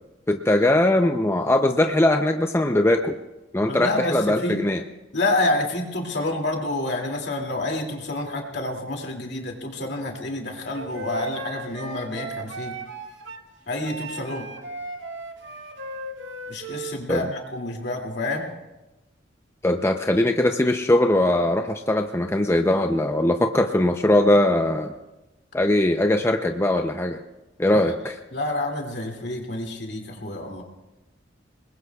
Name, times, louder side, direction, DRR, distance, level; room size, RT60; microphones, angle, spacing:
voice 1, 0.3-3.1 3.5-4.8 17.1-17.2 19.6-24.9 25.5-27.2 27.6-28.1, left 1 dB, 15° left, 5 dB, 0.5 m, -20 dB
voice 2, 3.7-4.6 5.1-12.8 13.7-14.5 16.5-18.5 27.7-27.8 28.3-30.6, left 2 dB, 65° left, 1 dB, 2.5 m, -28 dB
Wind instrument woodwind instrument, 10.7-13.4 13.8-17.0, right 2 dB, 75° right, 1.7 m, -36 dB
29.0 x 20.5 x 2.3 m, 1.0 s
head